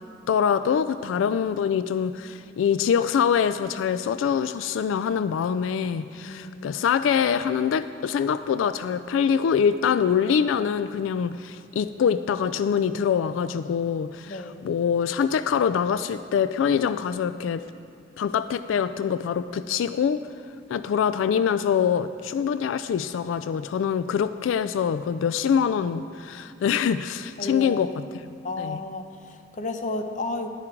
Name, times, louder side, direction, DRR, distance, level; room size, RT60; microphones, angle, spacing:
voice 1, 0.3-17.6 18.2-20.2 20.7-28.0 28.6-28.8, left 7 dB, 90° left, 13 dB, 0.3 m, -24 dB
voice 2, 6.3-6.9 14.3-14.6 27.4-28.0 28.4-30.5, left 2 dB, 40° left, 7 dB, 0.7 m, -33 dB
11.5 x 9.8 x 4.5 m, 2.4 s
head